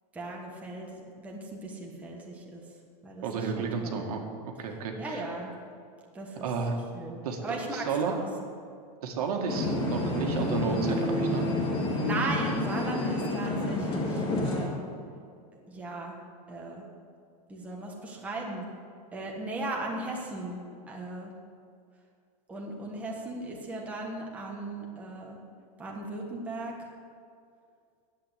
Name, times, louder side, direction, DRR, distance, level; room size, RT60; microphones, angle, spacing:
voice 1, 0.1-2.6 3.0-4.0 5.0-5.6 6.1-6.5 6.9-8.3 12.0-14.8 15.7-16.1 16.5-16.8 17.5-18.7 19.1-20.6 20.9-21.3 22.5-25.4 25.8-26.9, right 2 dB, 5° right, -2 dB, 1.3 m, -37 dB
voice 2, 3.2-5.2 6.4-6.8 7.2-8.1 9.0-11.5, right 5 dB, 70° right, 2 dB, 2.0 m, -32 dB
sound 1, 9.5-14.6, left 2 dB, 25° left, 2.3 m, -29 dB
10.5 x 8.5 x 8.2 m, 2.3 s
supercardioid pair, 165°, 20 cm